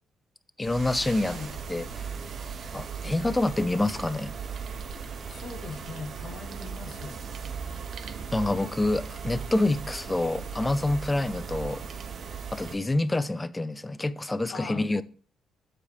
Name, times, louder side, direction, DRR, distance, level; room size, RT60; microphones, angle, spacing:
voice 1, 0.6-1.3 1.7-1.9 2.7-4.3 8.3-11.8 12.5-15.0, left 2 dB, 15° left, 0.4 m, -27 dB
sound 1, 0.6-12.8, right 6 dB, 55° right, 0.6 m, -38 dB
voice 2, 1.2-1.6 5.3-7.2 14.5-14.9, left 4 dB, 55° left, 0.9 m, -40 dB
7.5 x 4.8 x 3.3 m
cardioid pair, 90°, 0 cm